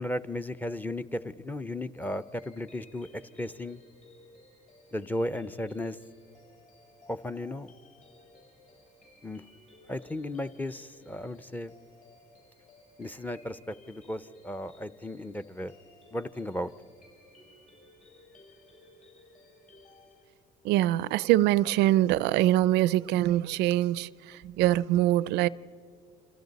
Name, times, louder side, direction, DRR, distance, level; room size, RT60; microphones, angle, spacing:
voice 1, 0.0-3.1 3.4-3.8 4.9-6.0 7.1-7.7 9.2-9.4 9.9-11.7 13.0-15.7 16.1-16.7, left 1 dB, 10° left, 0.5 m, -35 dB
sound 1, 1.9-20.3, left 2 dB, 45° left, 6.6 m, -58 dB
voice 2, 20.6-25.5, right 14 dB, 85° right, 0.4 m, -24 dB
29.5 x 25.5 x 4.1 m
cardioid pair, 110°, 17 cm